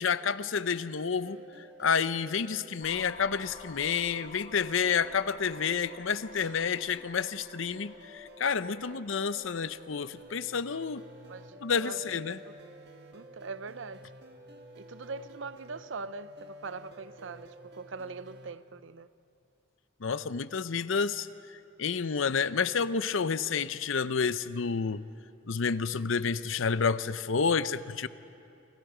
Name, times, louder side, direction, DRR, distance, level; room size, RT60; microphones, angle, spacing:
voice 1, 0.0-11.0 11.6-12.4 20.0-21.3 21.8-25.0 25.5-28.1, left 6 dB, 75° left, 15 dB, 0.6 m, -29 dB
sound 1, 1.3-18.5, equal, 50° right, 1.7 m, -51 dB
sound 2, 2.8-10.4, left 4 dB, 40° left, 1.0 m, -52 dB
voice 2, 8.6-9.0 11.3-12.2 12.5-12.6 13.1-14.1 14.8-19.1, right 4 dB, 70° right, 15 dB, 0.6 m, -42 dB
28.5 x 27.5 x 5.0 m, 2.7 s
head